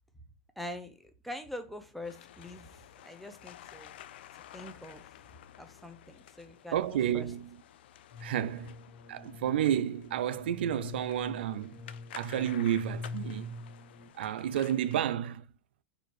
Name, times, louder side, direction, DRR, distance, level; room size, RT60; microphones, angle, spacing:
voice 1, 0.6-2.7 3.0-3.9 4.5-5.1 5.6-7.3, left 1 dB, ahead, 0.7 m, -44 dB
sound 1, 2.0-15.0, left 12 dB, 80° left, 0.4 m, -53 dB
voice 2, 6.7-7.6 8.2-8.8 9.1-11.9 12.1-13.6 14.1-15.5, right 10 dB, 80° right, 0.4 m, -31 dB
sound 2, 8.1-14.1, left 4 dB, 25° left, 1.1 m, -44 dB
4.3 x 2.7 x 4.5 m
supercardioid pair, 125°, 6 cm